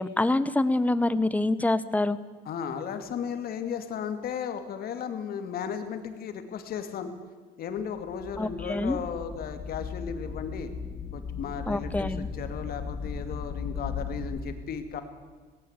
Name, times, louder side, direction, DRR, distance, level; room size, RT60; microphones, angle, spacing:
voice 1, 0.0-2.2 8.4-9.0 11.7-12.3, left 2 dB, 10° left, 15 dB, 1.0 m, -26 dB
voice 2, 2.5-7.1 7.6-10.7 11.1-15.0, left 7 dB, 65° left, 8 dB, 2.5 m, -35 dB
sound 1, 7.8-7.9 8.1-14.4, left 5 dB, 35° left, 2.4 m, -37 dB
18.5 x 18.0 x 8.2 m, 1.4 s
cardioid pair, 110°, 17 cm